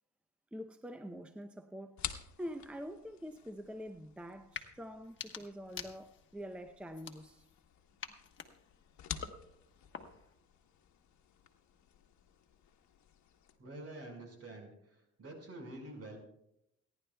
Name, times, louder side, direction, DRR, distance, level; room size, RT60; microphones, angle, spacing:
voice 1, 0.5-2.0 2.4-7.5 9.1-9.2, equal, 5° right, 0.6 m, -45 dB
sound 1, 2.0-13.6, left 9 dB, 70° left, 1.1 m, -50 dB
sound 2, 4.4-4.7 5.0-6.4 6.9-7.6 8.0-10.4, left 6 dB, 40° left, 1.3 m, -48 dB
voice 2, 13.6-16.2, right 2 dB, 55° right, 5.0 m, -48 dB
28.5 x 11.0 x 2.3 m
cardioid pair, 90°, 30 cm